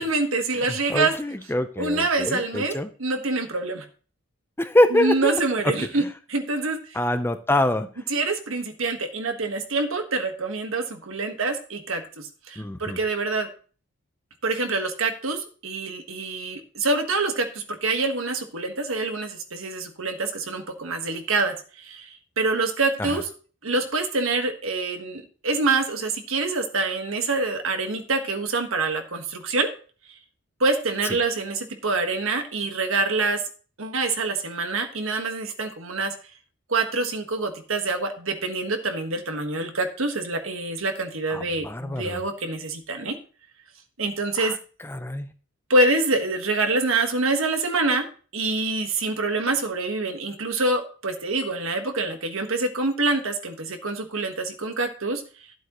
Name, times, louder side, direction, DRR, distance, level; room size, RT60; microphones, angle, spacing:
voice 1, 0.0-1.1 1.8-3.8 4.9-6.0 6.3-7.0 8.1-13.5 14.4-23.3 23.6-29.7 30.6-33.4 33.8-36.1 36.7-43.2 44.0-44.5 45.7-48.1 48.3-55.2, right 3 dB, 70° right, 6 dB, 1.5 m, -26 dB
voice 2, 0.9-2.9 4.6-5.4 5.8-5.9 6.9-7.9 12.6-13.0 23.0-23.2 41.3-42.2 44.4-44.6 44.8-45.3, left 1 dB, 10° left, 9 dB, 0.6 m, -24 dB
12.5 x 7.9 x 3.0 m, 0.39 s
head